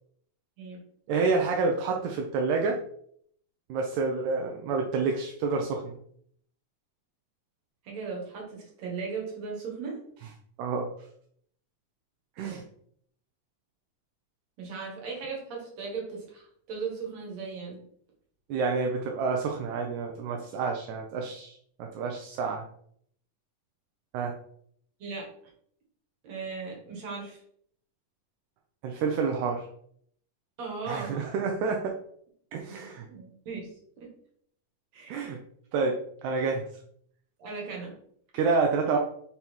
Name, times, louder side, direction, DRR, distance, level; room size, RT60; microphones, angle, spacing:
voice 1, 1.1-2.8 3.7-5.9 10.6-10.9 12.4-12.6 18.5-22.6 24.1-24.3 28.8-29.7 30.8-32.0 32.5-33.1 35.1-35.4 35.7-36.7 38.3-39.0, right 4 dB, 75° right, 2 dB, 1.9 m, -28 dB
voice 2, 7.8-10.0 12.4-12.6 14.6-17.8 25.0-25.3 26.2-27.4 30.6-31.3 33.1-33.7 34.0-34.1 34.9-35.3 37.4-37.9 38.3-38.6, right 4 dB, 60° right, -2 dB, 2.7 m, -37 dB
5.5 x 4.0 x 4.5 m, 0.66 s
omnidirectional pair, 3.7 m